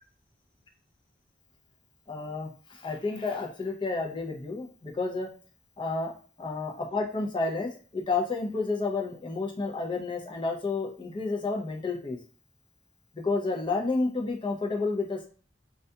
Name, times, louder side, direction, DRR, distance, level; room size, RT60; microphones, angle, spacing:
voice 1, 2.1-5.3 5.8-6.1 6.4-12.2 13.1-15.2, left 3 dB, 25° left, -1 dB, 0.5 m, -30 dB
2.4 x 2.2 x 2.6 m, 0.41 s
head